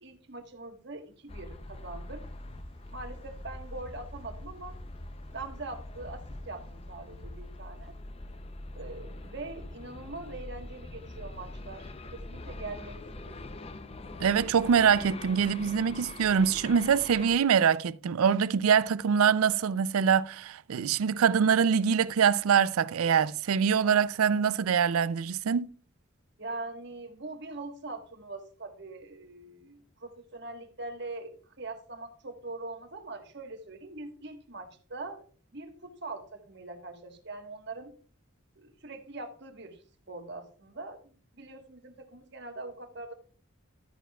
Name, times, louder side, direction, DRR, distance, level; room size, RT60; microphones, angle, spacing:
voice 1, 0.0-2.2 2.9-4.8 5.3-8.0 8.7-13.5 26.4-35.2 35.5-37.9 38.6-43.1, right 2 dB, 55° right, 1.4 m, -42 dB
sound 1, 1.3-17.4, left 2 dB, 30° left, 0.5 m, -43 dB
voice 2, 14.2-25.7, right 7 dB, 90° right, 0.4 m, -24 dB
12.0 x 9.1 x 2.3 m
head